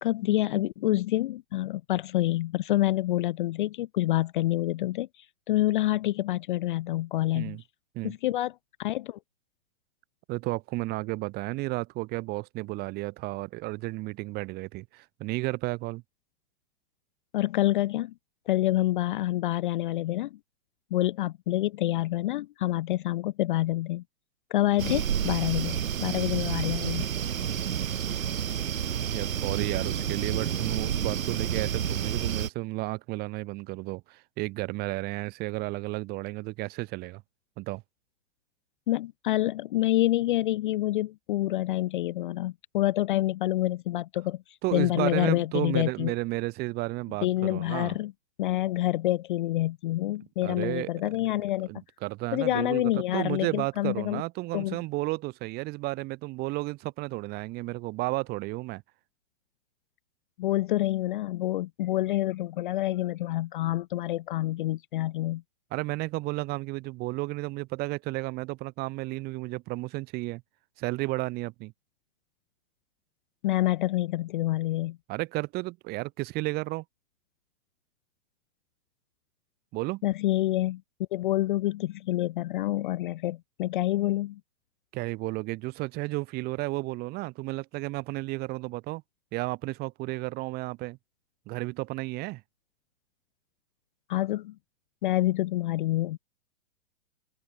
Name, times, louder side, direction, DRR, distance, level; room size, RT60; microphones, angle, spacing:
voice 1, 0.0-7.6 8.0-8.5 8.8-9.2 17.3-18.1 18.5-20.4 20.9-24.0 24.5-27.1 38.9-46.1 47.2-48.1 48.4-51.7 52.3-54.2 54.5-54.8 60.4-65.4 73.4-75.0 80.0-80.8 81.1-84.4 94.1-94.5 95.0-96.2, left 15 dB, 40° left, 0.4 m, -27 dB
voice 2, 10.3-16.0 29.1-37.2 37.6-37.8 44.6-47.9 50.4-50.9 51.7-58.8 65.7-70.4 70.8-71.7 75.1-76.8 79.7-80.0 84.9-89.0 89.3-91.0 91.5-92.4, right 21 dB, 25° right, 0.9 m, -33 dB
sound 1, 24.8-32.5, right 9 dB, 80° right, 2.4 m, -30 dB
hypercardioid pair, 140°, 40 cm